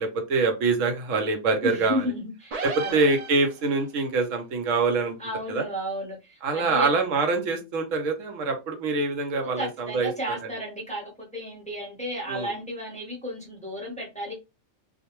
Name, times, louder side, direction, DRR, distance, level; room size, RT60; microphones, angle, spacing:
voice 1, 0.0-2.1 2.6-5.2 5.5-5.6 6.4-10.4 12.3-12.5, right 3 dB, 80° right, 1.0 m, -25 dB
voice 2, 1.6-3.0 5.2-6.9 9.6-14.3, equal, 5° left, 0.8 m, -33 dB
sound 1, 2.5-3.9, right 4 dB, 60° right, 0.4 m, -35 dB
2.4 x 2.1 x 2.9 m
omnidirectional pair, 1.3 m